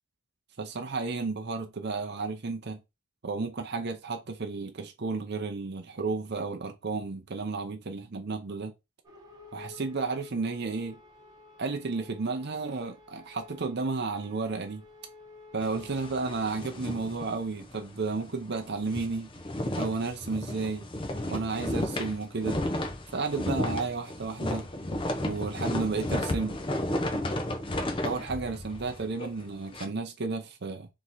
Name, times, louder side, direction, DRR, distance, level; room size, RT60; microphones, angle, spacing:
voice 1, 0.6-2.8 3.2-8.7 9.5-11.0 11.6-14.8 15.5-19.3 19.8-20.9 21.3-22.6 23.1-24.7 25.2-26.6 28.0-30.9, right 4 dB, 50° right, 0.6 m, -32 dB
sound 1, 9.0-17.1, left 3 dB, 20° right, 1.0 m, -52 dB
sound 2, 15.6-17.9 18.2-18.3 18.7-29.8, left 1 dB, 25° left, 0.7 m, -33 dB
3.6 x 3.1 x 4.1 m
head